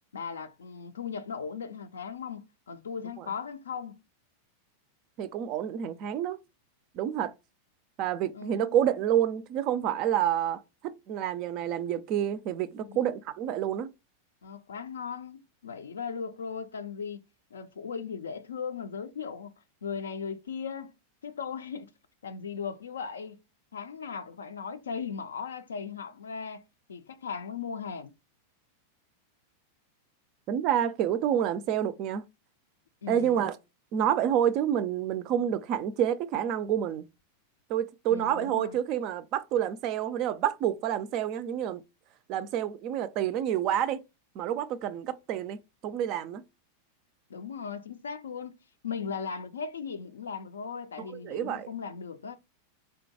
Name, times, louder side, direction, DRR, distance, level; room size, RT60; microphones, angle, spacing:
voice 1, 0.1-4.0 8.3-8.8 12.9-13.0 14.4-17.2 17.5-19.5 19.8-20.9 21.2-21.9 22.2-23.4 23.7-26.6 26.9-28.1 33.0-33.4 38.1-38.8 47.3-48.6 48.8-52.4, left 6 dB, 70° left, 0.4 m, -37 dB
voice 2, 5.2-6.4 6.9-7.3 8.0-13.9 30.5-32.2 33.1-33.6 33.9-37.0 37.7-41.8 42.3-44.0 44.4-46.4 51.2-51.7, right 10 dB, 40° right, 0.3 m, -28 dB
3.6 x 2.2 x 2.6 m
figure-of-eight pair, 90°, 0 cm